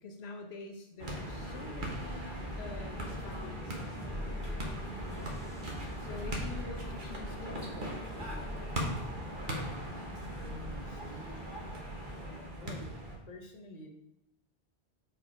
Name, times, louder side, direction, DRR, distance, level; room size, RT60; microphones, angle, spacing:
voice 1, 0.0-4.9 6.0-8.9, left 3 dB, 75° left, 5 dB, 0.9 m, -47 dB
sound 1, 1.0-13.2, right 1 dB, 50° right, 1.4 m, -39 dB
sound 2, 2.4-11.8, left 1 dB, 5° left, 0.5 m, -45 dB
voice 2, 10.2-11.4 12.2-12.9 13.2-13.9, left 1 dB, 40° left, 3 dB, 1.0 m, -49 dB
5.3 x 4.6 x 4.9 m, 0.88 s
omnidirectional pair, 1.1 m